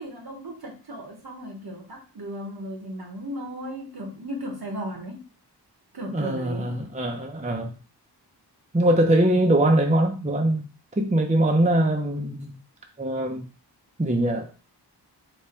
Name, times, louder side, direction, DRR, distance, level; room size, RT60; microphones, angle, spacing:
voice 1, 0.0-5.2 5.9-6.8, equal, 60° right, 2 dB, 1.2 m, -36 dB
voice 2, 6.1-7.7 8.7-10.7 11.0-12.6 13.0-13.4 14.0-14.5, right 1 dB, 15° right, 2 dB, 0.7 m, -22 dB
3.5 x 3.1 x 4.4 m, 0.35 s
wide cardioid pair, 85°, 42 cm